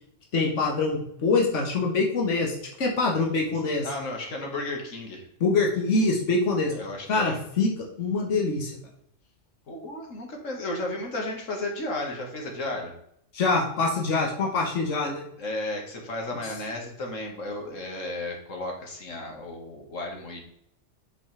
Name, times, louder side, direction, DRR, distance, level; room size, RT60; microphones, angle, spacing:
voice 1, 0.3-3.9 5.4-6.7 7.1-7.7 8.0-8.7 13.3-15.2, left 3 dB, 70° left, 0 dB, 1.8 m, -24 dB
voice 2, 3.8-5.2 6.7-7.4 9.7-12.9 15.4-20.4, left 2 dB, 90° left, 1 dB, 2.2 m, -33 dB
8.3 x 6.1 x 3.4 m, 0.73 s
omnidirectional pair, 1.3 m